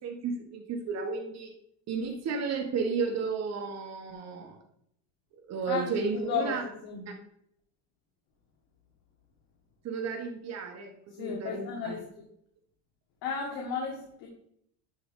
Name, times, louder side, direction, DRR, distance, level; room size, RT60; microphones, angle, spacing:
voice 1, 0.0-1.5 1.9-4.6 5.5-6.6 9.8-11.9, right 5 dB, 35° right, 4 dB, 1.2 m, -33 dB
voice 2, 5.7-7.0 11.2-12.0 13.2-14.3, left 5 dB, 75° left, -2 dB, 1.9 m, -34 dB
11.5 x 3.8 x 3.7 m, 0.70 s
cardioid pair, 160°, 45 cm